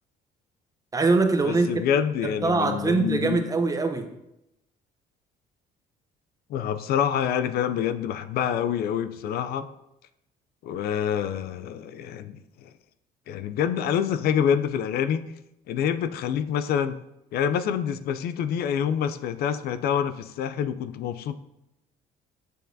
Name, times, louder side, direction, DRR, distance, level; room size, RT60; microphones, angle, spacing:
voice 1, 0.9-1.8 2.2-4.1, right 3 dB, 20° right, 6 dB, 0.7 m, -23 dB
voice 2, 1.4-3.4 6.5-9.7 10.6-12.3 13.3-15.3 15.7-17.0 17.3-21.3, left 8 dB, 65° left, 12 dB, 0.4 m, -26 dB
6.6 x 6.1 x 2.7 m, 0.85 s
cardioid pair, 110°, 17 cm